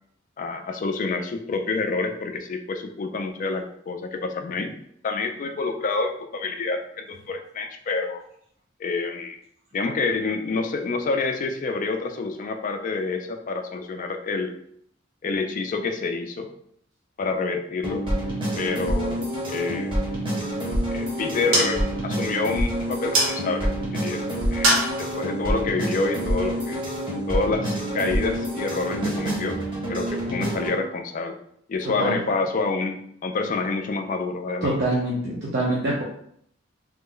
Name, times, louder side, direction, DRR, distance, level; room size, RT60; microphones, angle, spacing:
voice 1, 0.4-4.7 5.0-8.2 8.8-9.4 9.7-14.6 15.2-16.5 17.2-18.1 18.6-19.9 20.9-24.2 24.5-26.8 27.3-29.6 29.9-31.4 31.7-34.8, left 3 dB, 40° left, 6 dB, 0.3 m, -28 dB
sound 1, 17.8-30.8, right 1 dB, 25° right, 0.8 m, -27 dB
sound 2, 20.3-26.8, right 1 dB, 85° right, 0.8 m, -29 dB
voice 2, 31.8-32.2 34.6-36.0, right 1 dB, 55° right, -6 dB, 0.6 m, -25 dB
3.1 x 2.1 x 3.7 m, 0.68 s
head